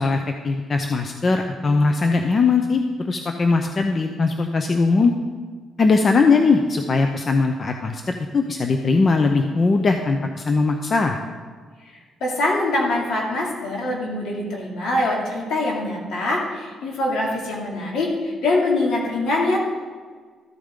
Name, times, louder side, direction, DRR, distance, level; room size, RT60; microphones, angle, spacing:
voice 1, 0.0-5.1 5.8-11.2, left 4 dB, 40° left, 5 dB, 0.7 m, -20 dB
voice 2, 11.9-19.6, left 2 dB, 70° left, -2 dB, 2.7 m, -24 dB
13.5 x 8.6 x 3.8 m, 1.5 s
cardioid pair, 90°, 0 cm